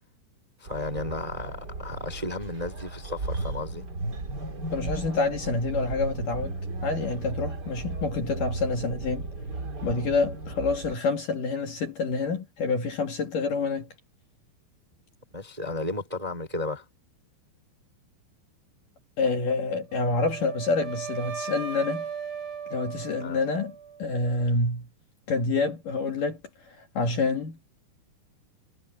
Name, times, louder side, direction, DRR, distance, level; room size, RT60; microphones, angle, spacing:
voice 1, 0.6-3.9 15.3-16.8 23.2-23.4, left 2 dB, 10° right, 2.6 m, -33 dB
sound 1, 0.7-10.9, right 2 dB, 30° right, 2.4 m, -35 dB
voice 2, 4.7-6.5 6.8-9.3 9.8-13.9 19.2-22.1 22.7-23.7 24.0-24.9 25.3-26.4 26.7-27.6, left 3 dB, 50° left, 3.3 m, -27 dB
Wind instrument woodwind instrument, 19.9-24.0, right 6 dB, 80° right, 5.3 m, -37 dB
omnidirectional pair, 5.4 m